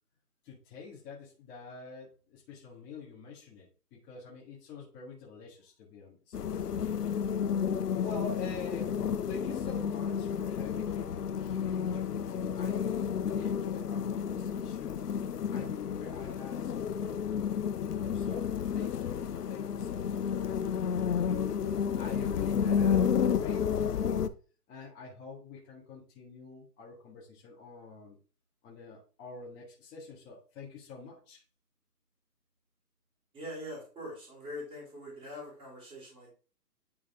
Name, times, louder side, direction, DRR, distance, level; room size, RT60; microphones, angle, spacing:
voice 1, 0.4-6.4 7.7-15.0 15.5-18.5 18.7-23.1 23.3-24.2 24.7-28.2 28.6-31.4, left 4 dB, 20° left, -4 dB, 1.6 m, -46 dB
sound 1, 6.3-24.3, left 7 dB, 75° left, 0.7 m, -31 dB
voice 2, 33.3-36.3, left 1 dB, 10° right, -5 dB, 2.8 m, -43 dB
9.6 x 3.5 x 3.5 m, 0.38 s
figure-of-eight pair, 135°, 47 cm